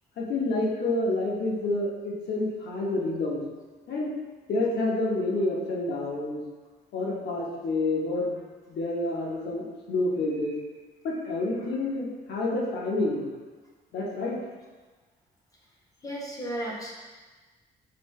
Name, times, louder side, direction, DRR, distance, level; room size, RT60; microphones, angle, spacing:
voice 1, 0.2-3.4 3.9-4.1 4.5-6.4 6.9-8.4 8.7-10.5 11.0-13.3 13.9-14.4, left 2 dB, 65° left, -3 dB, 1.0 m, -28 dB
voice 2, 16.0-16.9, right 1 dB, 20° left, -3 dB, 0.6 m, -34 dB
5.1 x 2.8 x 3.2 m, 1.3 s
cardioid pair, 175°, 19 cm